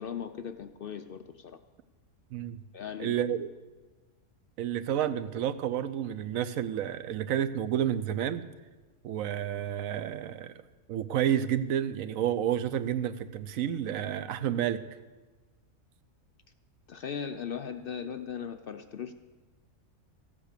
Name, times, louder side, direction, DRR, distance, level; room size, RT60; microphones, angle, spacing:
voice 1, 0.0-1.6 2.7-3.2 16.9-19.1, left 7 dB, 60° left, 8 dB, 0.6 m, -38 dB
voice 2, 3.0-3.5 4.6-8.5 9.0-10.5 10.9-14.8, right 10 dB, 85° right, 13 dB, 1.1 m, -30 dB
14.0 x 8.9 x 6.6 m, 1.3 s
omnidirectional pair, 1.4 m